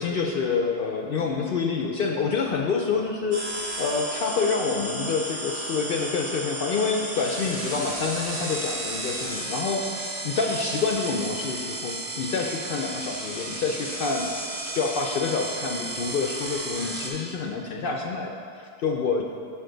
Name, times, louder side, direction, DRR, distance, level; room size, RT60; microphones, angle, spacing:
voice 1, 0.0-14.3 14.6-19.2, left 4 dB, 60° left, 2 dB, 0.6 m, -27 dB
sound 1, 3.3-17.1, right 1 dB, 30° right, 1.0 m, -33 dB
7.2 x 6.7 x 3.8 m, 2.3 s
omnidirectional pair, 1.3 m